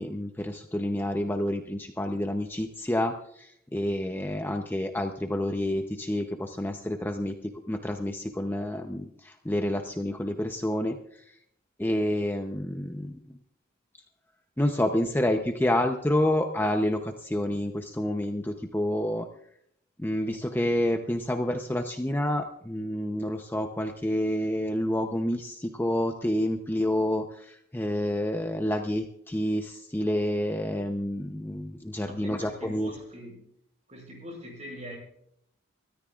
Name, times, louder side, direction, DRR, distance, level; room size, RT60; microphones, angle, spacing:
voice 1, 0.0-11.4 11.8-13.2 14.6-19.3 20.0-32.9, left 1 dB, 10° left, 4 dB, 0.7 m, -29 dB
voice 2, 32.0-33.5 33.9-35.0, equal, 35° right, 0 dB, 5.9 m, -43 dB
23.5 x 14.0 x 2.4 m, 0.71 s
head